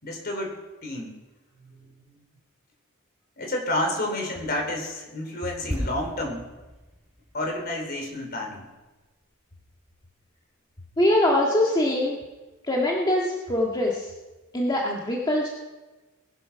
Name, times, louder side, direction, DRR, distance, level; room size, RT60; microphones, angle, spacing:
voice 1, 0.0-1.2 1.6-2.2 3.4-6.5 7.3-8.7, left 1 dB, 50° left, 2 dB, 3.6 m, -30 dB
sound 1, 5.7-9.4 9.6-9.8, equal, 5° right, 4.0 m, -37 dB
voice 2, 11.0-12.2 12.7-14.1 14.5-15.5, left 1 dB, 20° left, -2 dB, 1.7 m, -23 dB
20.0 x 11.5 x 5.8 m, 1.2 s
head